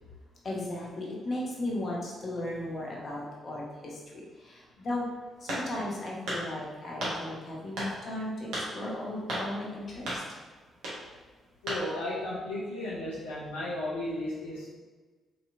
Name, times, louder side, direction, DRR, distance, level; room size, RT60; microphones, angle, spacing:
voice 1, 0.4-5.1 5.4-10.2, left 1 dB, 50° left, -3 dB, 0.8 m, -36 dB
sound 1, 5.5-5.9 6.3-6.4 7.0-7.2 7.8-7.9 8.5-8.7 9.3-9.5 10.1-10.2 10.8-11.0 11.7-11.8, right 1 dB, 70° right, 0.9 m, -33 dB
voice 2, 11.6-14.7, left 1 dB, 85° left, -8 dB, 0.4 m, -34 dB
3.2 x 2.8 x 2.5 m, 1.3 s
hypercardioid pair, 40°, 0 cm